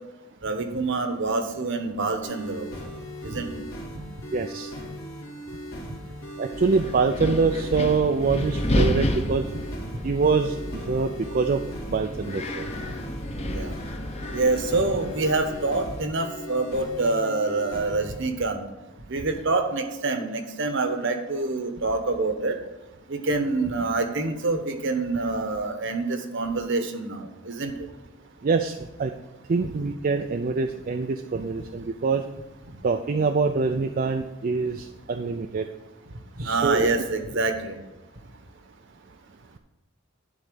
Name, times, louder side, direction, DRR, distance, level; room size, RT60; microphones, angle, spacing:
voice 1, 0.4-2.7 3.2-3.5 13.5-13.7 14.3-18.6 19.1-22.5 23.1-27.7 36.4-37.8, right 3 dB, 60° right, 7 dB, 1.1 m, -26 dB
sound 1, 2.2-18.2, equal, 80° left, 2.7 m, -39 dB
voice 2, 4.3-4.7 6.4-9.5 10.0-10.6 10.9-11.6 11.9-12.7 28.4-29.1 29.5-32.2 32.8-35.7 36.4-36.8, right 4 dB, 40° right, 6 dB, 0.4 m, -25 dB
Wind, 6.5-16.0, left 1 dB, 30° left, 0.9 m, -31 dB
11.5 x 4.1 x 6.7 m, 1.1 s
head